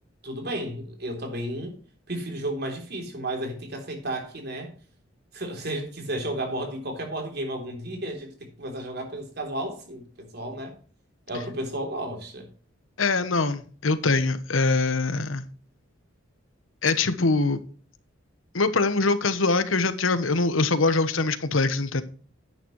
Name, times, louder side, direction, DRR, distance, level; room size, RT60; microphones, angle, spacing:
voice 1, 0.2-1.7 2.1-4.7 5.3-10.7 11.3-12.5, right 1 dB, 55° right, 3.5 m, -33 dB
voice 2, 13.0-15.4 16.8-17.6 18.5-22.0, left 3 dB, 85° left, 1.1 m, -23 dB
10.5 x 8.9 x 3.2 m
head